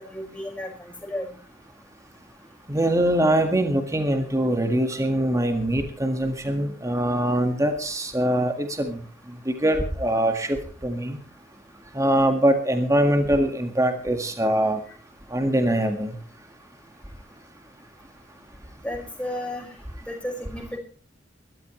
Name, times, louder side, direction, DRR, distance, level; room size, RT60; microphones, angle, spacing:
voice 1, 0.1-0.7 1.1-1.3 18.8-19.7 20.1-20.8, left 1 dB, 5° left, 1 dB, 5.4 m, -32 dB
voice 2, 2.7-9.0 9.5-10.6 10.8-11.2 11.9-14.8 15.3-16.2, right 1 dB, 15° right, 5 dB, 1.8 m, -23 dB
22.0 x 13.5 x 3.2 m, 0.39 s
head